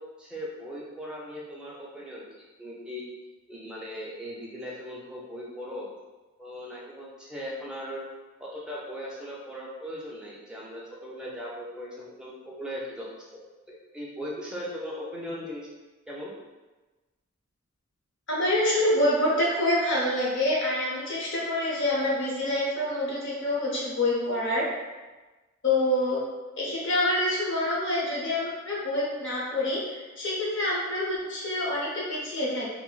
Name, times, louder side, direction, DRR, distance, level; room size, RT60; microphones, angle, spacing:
voice 1, 0.0-2.2 2.6-3.0 3.5-5.9 6.4-8.1 8.4-15.7 16.1-16.3, equal, 5° right, -6 dB, 0.5 m, -38 dB
voice 2, 18.3-24.6 25.6-26.2 26.6-32.7, left 1 dB, 55° left, -5 dB, 0.8 m, -26 dB
2.5 x 2.0 x 3.8 m, 1.2 s
head